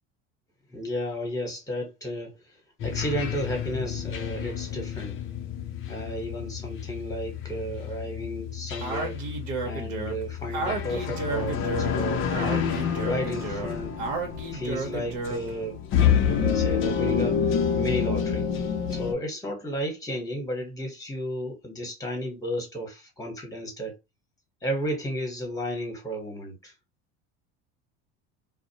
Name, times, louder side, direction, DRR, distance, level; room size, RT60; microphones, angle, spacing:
voice 1, 0.7-2.3 2.8-5.2 5.9-9.2 9.6-12.2 12.9-14.0 14.5-15.8 16.1-18.5 18.9-23.9 24.6-26.7, equal, 10° left, 1.2 m, -33 dB
sound 1, 2.8-19.1, left 7 dB, 40° left, 0.5 m, -29 dB
Speech, 8.8-15.6, right 3 dB, 60° right, 0.9 m, -33 dB
2.4 x 2.0 x 2.8 m
supercardioid pair, 110°, 33 cm